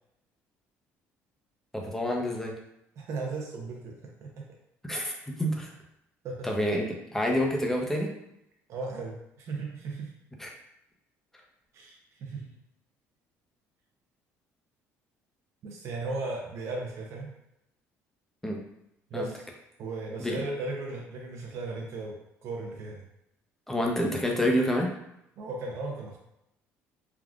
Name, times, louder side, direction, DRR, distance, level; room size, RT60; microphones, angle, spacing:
voice 1, 1.7-2.5 4.8-5.1 5.4-5.7 6.4-8.1 10.4-10.5 18.4-18.6 19.1-19.3 20.2-20.4 23.7-24.9, equal, 5° left, 0 dB, 0.6 m, -28 dB
voice 2, 3.0-4.4 6.2-6.5 8.7-10.1 11.7-12.5 15.6-17.3 19.1-19.4 19.8-23.0 25.4-26.2, right 3 dB, 55° right, -1 dB, 0.5 m, -36 dB
3.5 x 2.4 x 2.3 m, 0.81 s
cardioid pair, 105°, 6 cm